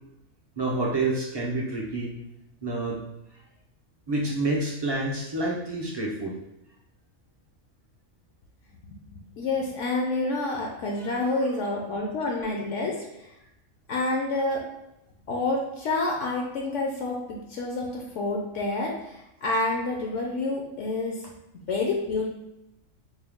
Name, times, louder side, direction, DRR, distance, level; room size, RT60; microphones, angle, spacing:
voice 1, 0.6-2.2 2.6-3.0 4.1-6.4, right 2 dB, 35° right, -3 dB, 0.4 m, -28 dB
voice 2, 9.1-13.3 13.9-14.7 15.3-21.3 21.7-22.3, left 2 dB, 70° left, -1 dB, 0.9 m, -28 dB
4.4 x 2.2 x 3.5 m, 0.89 s
omnidirectional pair, 1.4 m